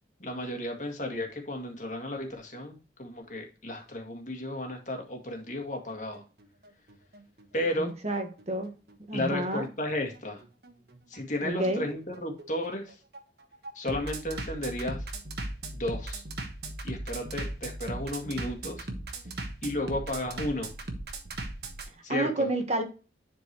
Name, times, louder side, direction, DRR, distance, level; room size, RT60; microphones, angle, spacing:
voice 1, 0.2-6.2 7.5-7.9 9.1-10.4 11.1-12.9 13.8-15.0 15.7-16.2 16.8-18.9 19.6-20.7 22.0-22.5, left 1 dB, 45° left, 3 dB, 1.9 m, -33 dB
Bass drum, 5.9-21.9, right 2 dB, 60° right, 1.3 m, -38 dB
voice 2, 7.8-8.7 9.1-9.7 11.4-11.8 22.1-22.8, right 1 dB, 40° right, 5 dB, 1.2 m, -29 dB
11.0 x 4.5 x 3.0 m, 0.34 s
head